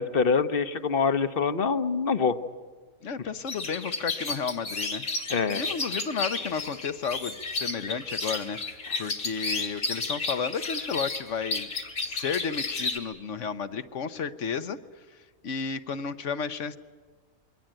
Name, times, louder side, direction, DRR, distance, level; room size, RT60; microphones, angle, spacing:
voice 1, 0.0-2.4 5.3-5.6 8.9-9.0, left 5 dB, 45° left, 11 dB, 1.2 m, -25 dB
voice 2, 3.0-5.0 5.5-11.7 12.0-14.8 15.4-16.8, left 6 dB, 60° left, 12 dB, 1.4 m, -32 dB
sound 1, 3.5-13.0, left 3 dB, 75° left, 3.1 m, -32 dB
28.0 x 23.0 x 9.0 m, 1.5 s
omnidirectional pair, 1.5 m